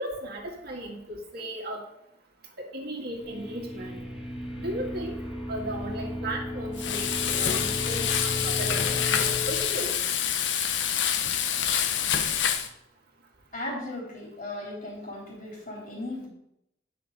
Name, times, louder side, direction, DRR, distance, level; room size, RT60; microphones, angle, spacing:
voice 1, 0.0-1.8 2.6-4.0 4.6-5.2 5.5-9.9, right 1 dB, 60° right, -1 dB, 1.9 m, -36 dB
sound 1, 3.1-9.6, left 2 dB, 5° right, 1.7 m, -34 dB
Frying (food), 6.8-12.7, left 8 dB, 80° left, 0.8 m, -27 dB
voice 2, 13.5-16.3, left 1 dB, 50° left, -3 dB, 4.0 m, -36 dB
9.2 x 6.0 x 5.1 m, 0.81 s
head